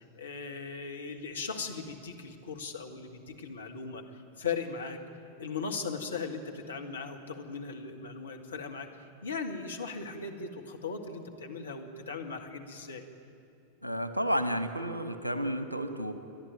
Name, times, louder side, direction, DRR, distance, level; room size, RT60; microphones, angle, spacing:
voice 1, 0.0-4.0 4.4-5.0 5.4-8.9 9.2-13.1, left 5 dB, 70° left, 3 dB, 1.8 m, -38 dB
voice 2, 13.8-16.1, equal, 85° right, 10 dB, 1.2 m, -31 dB
29.5 x 11.0 x 9.2 m, 2.6 s
figure-of-eight pair, 90°, 0 cm